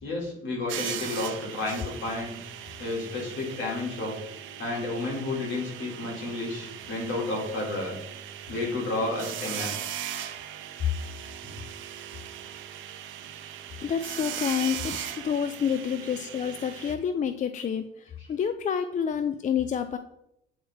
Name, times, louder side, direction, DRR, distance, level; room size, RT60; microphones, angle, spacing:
voice 1, 0.0-2.4 2.8-4.2 4.6-8.0 8.5-9.7 18.2-18.3, left 2 dB, 70° left, -2 dB, 2.3 m, -31 dB
sound 1, 0.7-17.0, right 10 dB, 80° right, 0.6 m, -39 dB
voice 2, 13.8-20.0, left 7 dB, 40° left, 10 dB, 0.4 m, -28 dB
8.6 x 3.4 x 3.5 m, 0.78 s
cardioid pair, 90°, 20 cm